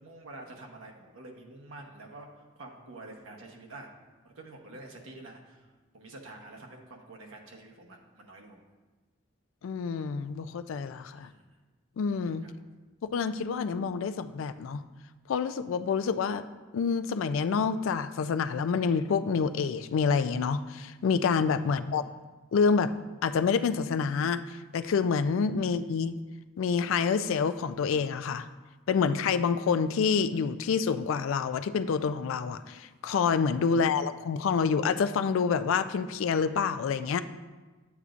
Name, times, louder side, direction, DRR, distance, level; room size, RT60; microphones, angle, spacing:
voice 1, 0.0-3.9 4.2-8.6 11.1-11.4 12.4-12.5 21.7-22.2 25.6-25.7, right 2 dB, 85° right, 2 dB, 1.0 m, -48 dB
voice 2, 9.6-11.3 12.0-12.4 13.1-14.8 15.3-16.4 16.7-22.1 22.5-22.9 23.2-26.2 26.6-28.5 28.9-37.2, left 5 dB, 80° left, 11 dB, 0.3 m, -27 dB
8.2 x 8.0 x 2.5 m, 1.3 s
head